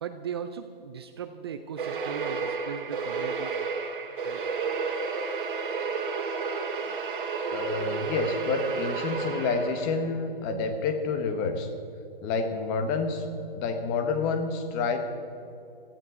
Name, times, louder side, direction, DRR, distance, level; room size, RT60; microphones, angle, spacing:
voice 1, 0.0-3.6 4.2-4.4, right 7 dB, 25° right, 8 dB, 0.5 m, -38 dB
sound 1, 1.8-10.1, right 5 dB, 60° right, 2.1 m, -31 dB
voice 2, 7.5-11.7 12.2-13.3 13.5-15.0, left 4 dB, 20° left, 8 dB, 1.2 m, -28 dB
17.5 x 14.5 x 4.9 m, 2.7 s
hypercardioid pair, 150°, 29 cm